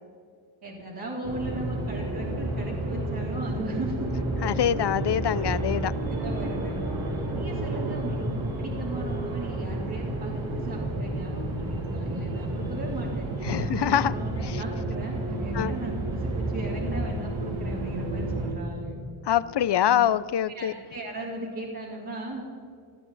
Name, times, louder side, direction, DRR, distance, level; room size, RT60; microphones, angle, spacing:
voice 1, 0.6-4.1 6.1-6.8 7.4-19.0 19.9-20.0 20.5-22.5, right 1 dB, 45° right, -6 dB, 3.2 m, -37 dB
sound 1, 1.2-18.5, right 1 dB, 70° right, 3.0 m, -31 dB
voice 2, 4.4-5.9 13.4-14.1 14.4-14.6 15.5-15.7 19.3-20.7, left 10 dB, 55° left, 18 dB, 0.6 m, -24 dB
19.5 x 14.0 x 4.1 m, 2.4 s
wide cardioid pair, 105°, 49 cm